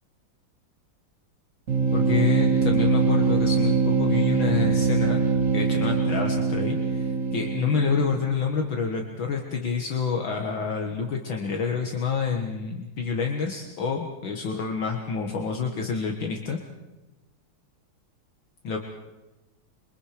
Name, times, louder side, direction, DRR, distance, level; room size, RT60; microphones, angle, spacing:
sound 1, 1.7-8.3, right 4 dB, 40° right, 2.5 m, -23 dB
voice 1, 1.9-5.2 5.5-16.6 18.6-18.8, left 5 dB, 65° left, 2 dB, 2.3 m, -28 dB
27.0 x 24.0 x 5.1 m, 1.1 s
omnidirectional pair, 2.4 m